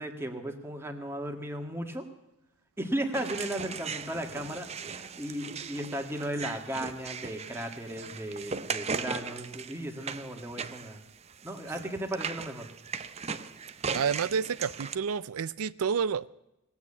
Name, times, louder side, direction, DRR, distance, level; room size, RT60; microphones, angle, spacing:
voice 1, 0.0-2.1 2.8-11.0 11.4-12.7, right 1 dB, 10° right, 4 dB, 1.6 m, -36 dB
sound 1, 3.1-14.9, right 5 dB, 30° right, 0.6 m, -38 dB
voice 2, 13.9-16.3, right 6 dB, 90° right, 16 dB, 0.5 m, -29 dB
19.0 x 8.4 x 8.5 m, 0.91 s
head